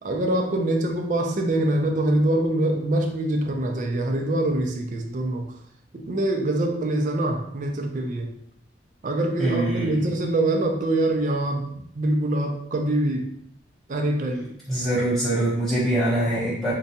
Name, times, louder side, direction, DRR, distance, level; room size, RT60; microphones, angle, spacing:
voice 1, 0.0-5.5 5.9-8.3 9.0-13.3 13.9-14.5, right 1 dB, 45° right, 3 dB, 0.4 m, -24 dB
voice 2, 9.4-10.0 14.7-16.7, right 1 dB, ahead, -10 dB, 0.7 m, -23 dB
3.8 x 2.2 x 2.7 m, 0.68 s
head